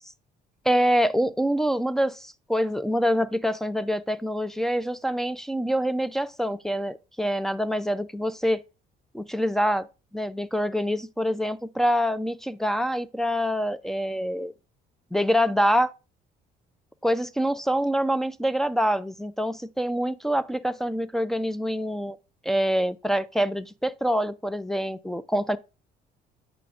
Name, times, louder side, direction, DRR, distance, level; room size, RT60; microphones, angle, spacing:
voice 1, 0.7-8.6 9.1-9.9 10.1-14.5 15.1-15.9 17.0-22.2 22.4-25.6, equal, ahead, 0.4 m, -25 dB
8.4 x 5.1 x 2.3 m
cardioid pair, 110°, 17 cm